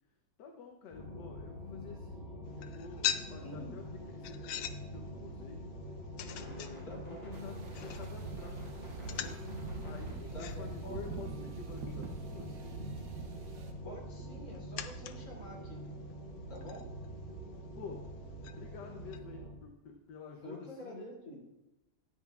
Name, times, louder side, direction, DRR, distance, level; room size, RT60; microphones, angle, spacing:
voice 1, 0.4-5.7 6.4-8.6 9.1-9.5 9.8-12.9 17.8-18.1 18.5-21.1, left 5 dB, 70° left, 3 dB, 1.4 m, -50 dB
sound 1, 0.9-19.5, equal, 25° left, 4.1 m, -45 dB
sound 2, 2.5-19.2, left 10 dB, 85° left, 1.3 m, -45 dB
voice 2, 3.4-3.7 6.9-7.2 10.3-11.0 11.3-11.5 13.8-15.8 16.5-16.8 20.4-21.4, left 1 dB, 50° left, -4 dB, 3.3 m, -47 dB
sound 3, 7.3-13.7, right 4 dB, 55° right, 1.2 m, -45 dB
13.0 x 9.9 x 2.4 m, 0.99 s
omnidirectional pair, 2.1 m